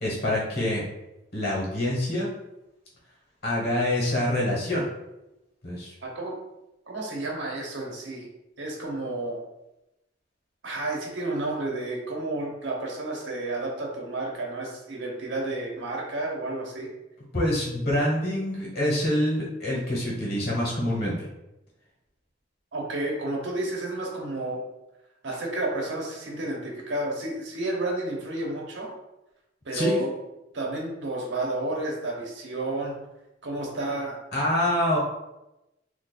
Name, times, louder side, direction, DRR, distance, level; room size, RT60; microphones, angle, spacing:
voice 1, 0.0-0.8 1.3-2.3 3.4-4.9 5.6-5.9 17.3-21.1 29.7-30.0 34.3-35.0, left 1 dB, 60° left, -5 dB, 1.5 m, -26 dB
voice 2, 6.0-6.3 6.9-8.3 8.6-9.4 10.6-16.9 22.7-24.7 25.2-28.9 29.6-30.1 30.5-33.0 33.4-34.2, right 2 dB, 75° right, -1 dB, 1.0 m, -31 dB
2.9 x 2.6 x 4.1 m, 0.93 s
head